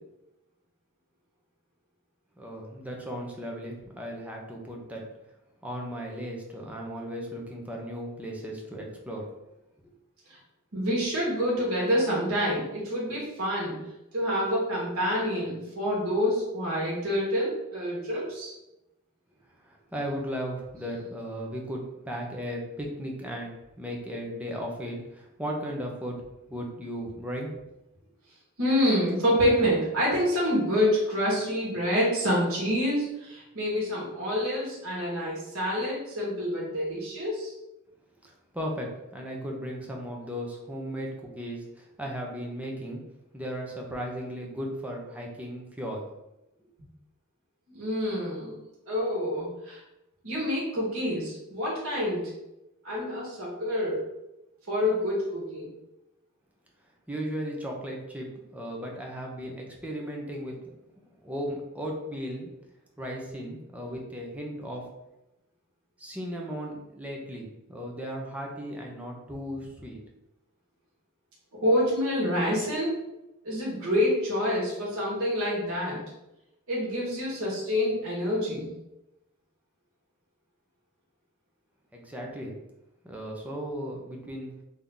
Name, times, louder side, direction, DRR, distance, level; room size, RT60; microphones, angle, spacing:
voice 1, 2.4-5.0 5.6-9.5 19.6-26.2 26.5-27.5 38.2-43.0 43.3-46.1 57.1-60.6 61.2-62.5 63.0-64.9 66.0-70.0 81.9-82.6 83.0-84.5, equal, 5° right, -1 dB, 0.7 m, -36 dB
voice 2, 10.7-13.8 14.1-18.5 28.6-37.5 47.7-48.6 48.9-49.8 50.2-52.3 52.8-54.1 54.7-55.7 71.5-73.0 73.4-76.0 76.7-78.7, equal, 70° right, -5 dB, 1.5 m, -27 dB
3.8 x 2.8 x 3.5 m, 0.90 s
head